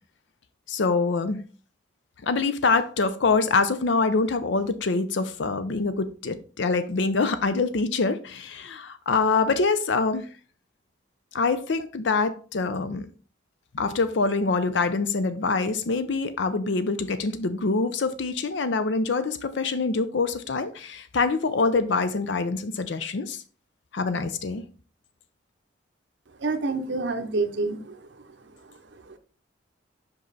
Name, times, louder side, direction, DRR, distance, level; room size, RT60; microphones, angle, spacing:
voice 1, 0.7-1.4 2.2-10.2 11.3-13.1 13.7-23.4 23.9-24.6, left 4 dB, 70° left, 0.5 m, -25 dB
voice 2, 26.4-28.0 29.1-29.2, right 3 dB, 65° right, 0.7 m, -27 dB
5.5 x 5.3 x 3.9 m
head